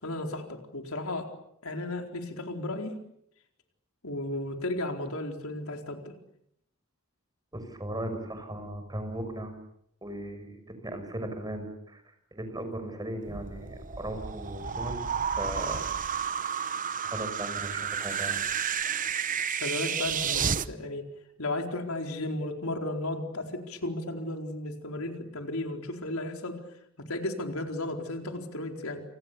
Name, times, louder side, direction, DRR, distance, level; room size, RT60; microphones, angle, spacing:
voice 1, 0.0-1.3 1.6-2.9 4.0-6.1 19.5-21.1 21.4-26.6 27.0-29.0, left 2 dB, 85° left, 4 dB, 4.4 m, -34 dB
voice 2, 7.5-9.5 10.0-12.0 12.3-15.8 17.0-18.4, right 1 dB, 20° right, 7 dB, 6.0 m, -37 dB
sound 1, 13.2-20.7, right 7 dB, 40° right, 1.0 m, -31 dB
28.5 x 28.5 x 7.1 m, 0.73 s
head